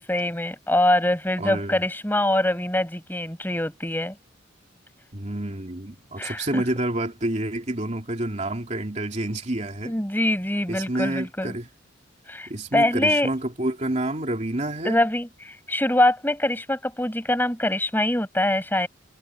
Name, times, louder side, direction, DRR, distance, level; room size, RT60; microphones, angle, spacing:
voice 1, 0.0-4.2 6.2-6.6 9.8-11.6 12.3-13.3 14.8-18.9, left 1 dB, 10° left, 5.8 m, -24 dB
voice 2, 1.4-1.8 5.1-9.9 10.7-11.7 12.5-15.0, right 1 dB, 35° right, 3.0 m, -28 dB
head